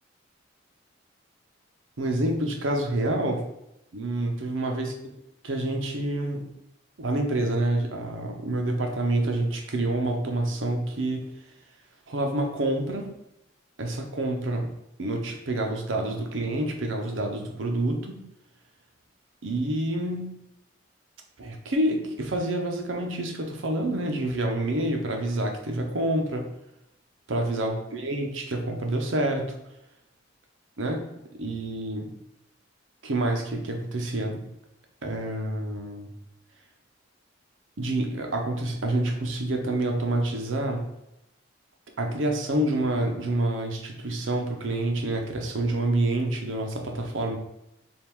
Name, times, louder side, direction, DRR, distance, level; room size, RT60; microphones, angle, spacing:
voice 1, 2.0-3.4 3.9-4.9 5.4-6.5 7.0-11.3 12.1-13.1 13.8-14.7 15.0-18.2 19.4-20.4 21.4-26.5 27.3-29.5 30.8-31.0 31.3-32.1 33.0-34.4 35.0-36.1 37.8-40.9 42.0-47.4, right 1 dB, 75° right, 3 dB, 0.7 m, -27 dB
3.5 x 2.4 x 4.5 m, 0.85 s
head